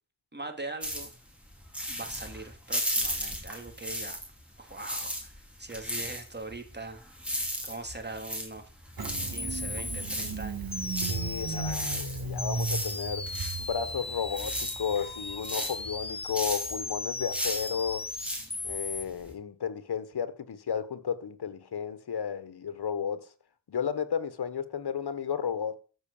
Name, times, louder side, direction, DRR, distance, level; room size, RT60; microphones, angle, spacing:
voice 1, 0.3-1.1 1.9-4.2 4.6-7.0 7.6-8.7 9.3-10.7 11.4-11.8, right 2 dB, 25° right, 3.3 m, -41 dB
sound 1, 0.8-4.4 4.7-19.3, equal, 5° right, 4.7 m, -36 dB
sound 2, 9.0-9.1 9.4-10.1 10.7-12.0 12.4-19.0, left 3 dB, 15° left, 0.6 m, -37 dB
Engine starting, 9.0-15.5, right 4 dB, 65° right, 3.1 m, -36 dB
voice 2, 11.1-13.3 13.6-18.1 18.6-23.3 23.7-25.8, left 7 dB, 80° left, 1.4 m, -33 dB
14.0 x 6.1 x 7.3 m
cardioid pair, 60°, 38 cm